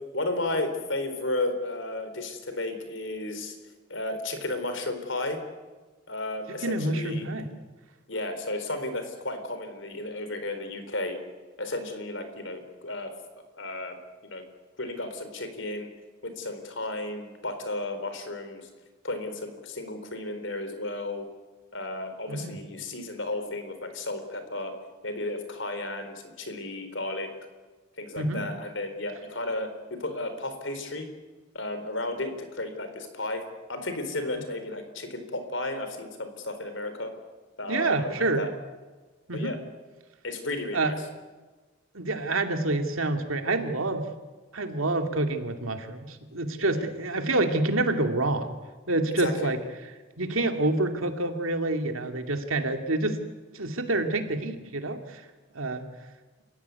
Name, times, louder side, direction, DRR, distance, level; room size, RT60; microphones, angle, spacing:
voice 1, 0.1-3.6 3.9-5.4 6.1-7.3 8.1-11.2 11.6-13.1 13.6-14.0 14.2-14.4 14.8-15.9 16.2-18.7 19.0-21.3 21.7-24.7 25.0-27.3 28.0-31.1 31.5-33.4 33.7-37.1 37.6-38.5 39.3-39.6 40.2-40.9 46.7-46.8 49.2-49.5, left 2 dB, 65° left, 8 dB, 4.0 m, -33 dB
voice 2, 6.6-7.5 22.3-22.6 28.2-28.4 37.7-38.4 39.3-39.5 40.7-40.9 41.9-44.1 44.5-48.5 48.9-49.6 50.2-53.2 53.5-55.2 55.5-55.8, right 2 dB, 90° right, 6 dB, 2.5 m, -27 dB
29.0 x 15.5 x 9.6 m, 1.3 s
head